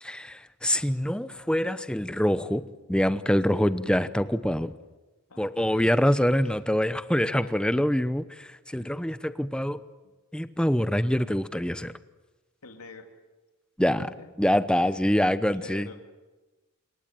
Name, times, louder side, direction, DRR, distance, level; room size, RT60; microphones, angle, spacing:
voice 1, 0.0-2.6 2.9-4.7 5.4-9.8 10.3-11.9 13.8-14.0 14.4-15.9, equal, 5° left, 14 dB, 0.8 m, -25 dB
voice 2, 5.3-6.0 6.4-6.5 7.2-7.5 8.7-8.9 12.6-13.1 13.8-14.3 14.8-15.1 15.4-16.0, left 3 dB, 85° left, 5 dB, 2.8 m, -46 dB
27.5 x 23.0 x 9.2 m, 1.2 s
head